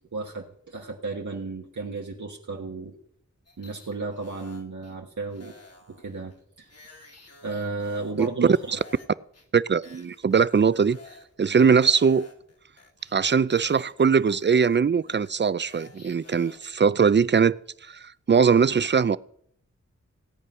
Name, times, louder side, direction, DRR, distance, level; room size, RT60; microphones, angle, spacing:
voice 1, 0.1-2.9 3.6-5.5 5.9-6.7 7.4-8.6, right 3 dB, 80° right, 1.5 m, -33 dB
sound 1, 3.5-4.9 5.3-9.1 9.3-9.5 9.8-11.3 11.6-16.7, left 3 dB, 55° left, 2.1 m, -51 dB
voice 2, 9.5-11.0 11.4-12.3 13.1-17.5 17.8-19.2, right 6 dB, 40° right, 0.5 m, -21 dB
17.0 x 9.3 x 5.7 m
wide cardioid pair, 70°, 29 cm